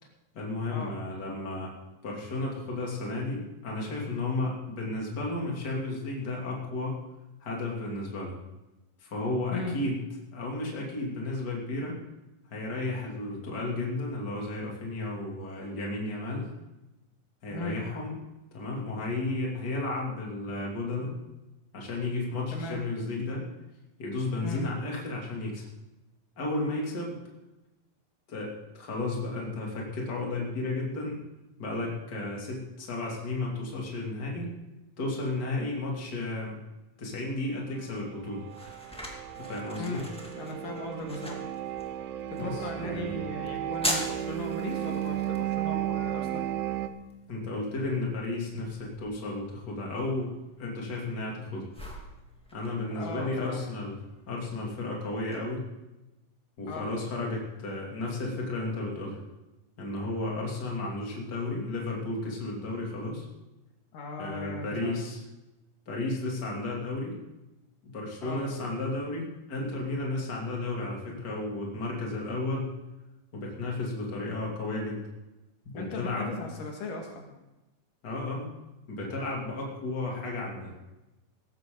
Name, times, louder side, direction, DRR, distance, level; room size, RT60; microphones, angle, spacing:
voice 1, 0.3-1.7 2.0-7.0 7.4-8.3 9.0-10.0 10.3-12.0 12.5-16.5 17.4-18.1 18.5-21.1 21.7-23.4 24.0-25.7 26.4-27.2 28.3-31.2 31.6-34.5 35.0-36.6 37.0-38.4 39.4-40.0 42.4-43.1 47.3-51.7 52.5-54.0 54.3-55.6 56.6-59.2 59.8-63.3 64.2-65.2 65.9-67.2 67.8-72.7 73.3-75.0 75.6-76.4 78.0-78.5 78.9-80.7, left 2 dB, 30° left, -2 dB, 3.1 m, -33 dB
voice 2, 17.5-17.8 22.5-22.8 24.4-24.6 39.8-40.1 40.4-41.4 42.3-46.4 53.0-53.6 56.7-56.9 63.9-65.0 68.2-68.4 75.8-77.2, left 2 dB, 75° left, 1 dB, 3.5 m, -37 dB
sound 1, 37.8-55.4, equal, 5° left, 1.3 m, -43 dB
sound 2, 38.3-46.9, right 12 dB, 90° right, 1.4 m, -34 dB
17.5 x 14.0 x 3.9 m, 1.0 s
omnidirectional pair, 3.9 m